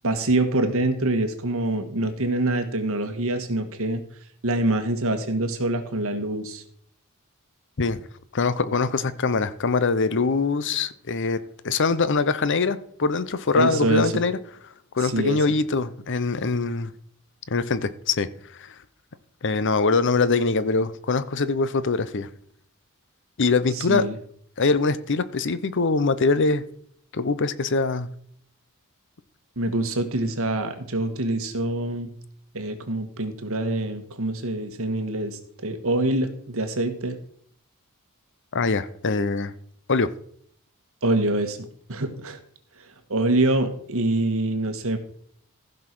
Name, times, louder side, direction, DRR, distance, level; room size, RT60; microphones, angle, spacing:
voice 1, 0.0-4.0 4.4-6.6 13.5-14.2 15.0-15.4 23.7-24.1 29.5-32.1 32.5-37.2 41.0-41.6 41.9-42.4 43.1-45.0, right 2 dB, 65° right, 7 dB, 1.7 m, -25 dB
voice 2, 8.3-11.4 11.6-14.4 14.9-16.9 17.5-18.3 18.6-18.7 19.4-22.3 23.4-24.0 24.6-26.6 27.1-28.1 38.5-39.5 39.9-40.1, left 4 dB, 55° left, 15 dB, 0.8 m, -23 dB
15.0 x 5.5 x 6.1 m, 0.62 s
head